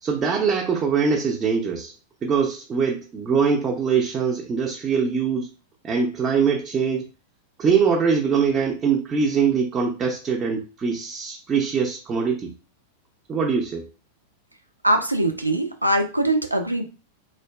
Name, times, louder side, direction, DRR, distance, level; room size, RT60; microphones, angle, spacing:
voice 1, 0.0-1.9 2.2-5.5 5.8-7.0 7.6-12.5 13.3-13.9, right 6 dB, 25° right, 0 dB, 0.5 m, -23 dB
voice 2, 14.8-16.8, right 1 dB, 90° right, 5 dB, 0.4 m, -22 dB
3.3 x 2.5 x 2.2 m, 0.32 s
figure-of-eight pair, 90°, 0 cm